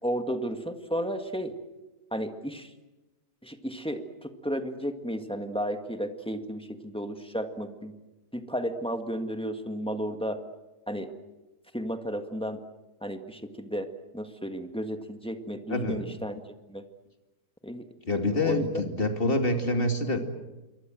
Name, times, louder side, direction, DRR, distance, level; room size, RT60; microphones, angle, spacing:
voice 1, 0.0-1.6 2.1-2.7 3.4-7.9 8.3-10.4 10.9-11.1 11.7-12.6 13.0-13.9 14.1-16.4 16.7-16.8 17.6-17.9 18.3-18.7, equal, 5° left, 6 dB, 1.7 m, -33 dB
voice 2, 15.7-16.0 18.1-20.2, left 2 dB, 35° left, 5 dB, 2.7 m, -26 dB
28.0 x 23.5 x 7.7 m, 1.1 s
omnidirectional pair, 1.7 m